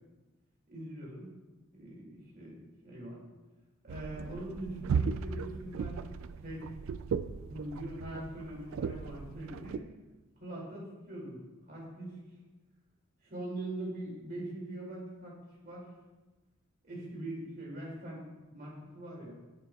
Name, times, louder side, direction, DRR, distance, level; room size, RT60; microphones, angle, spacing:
voice 1, 0.7-1.3 1.7-2.6 2.8-3.2 3.8-6.0 6.4-6.6 7.5-9.8 10.4-11.4 11.7-12.2 13.2-15.4 15.6-15.9 16.8-19.3, right 1 dB, 45° right, -4 dB, 2.4 m, -42 dB
sound 1, 3.9-9.8, right 6 dB, 75° right, 0.3 m, -36 dB
8.7 x 8.1 x 2.3 m, 1.1 s
head